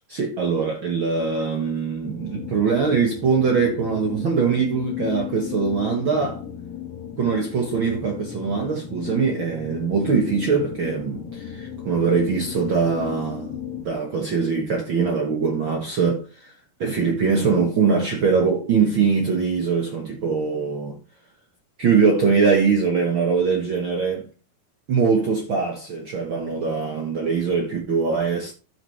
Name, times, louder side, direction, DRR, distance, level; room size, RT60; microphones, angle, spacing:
voice 1, 0.1-6.4 7.2-16.5 16.8-21.0 21.8-24.3 24.9-28.5, right 5 dB, 60° right, 1.3 m, -22 dB
sound 1, 2.0-13.8, left 9 dB, 60° left, 2.8 m, -35 dB
12.5 x 6.2 x 3.2 m
omnidirectional pair, 4.0 m